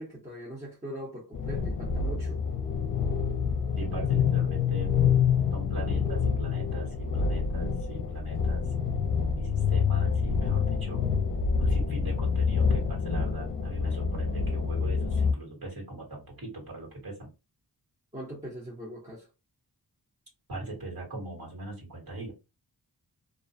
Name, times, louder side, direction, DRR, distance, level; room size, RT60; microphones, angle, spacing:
voice 1, 0.0-2.4 18.1-19.3, equal, 20° right, 0.7 m, -41 dB
sound 1, 1.3-15.3, left 6 dB, 55° left, 0.5 m, -27 dB
voice 2, 3.8-5.0 5.5-8.7 9.3-11.0 11.6-17.3 20.5-22.3, right 2 dB, 60° right, 1.4 m, -40 dB
2.4 x 2.1 x 2.5 m
wide cardioid pair, 105°, 40 cm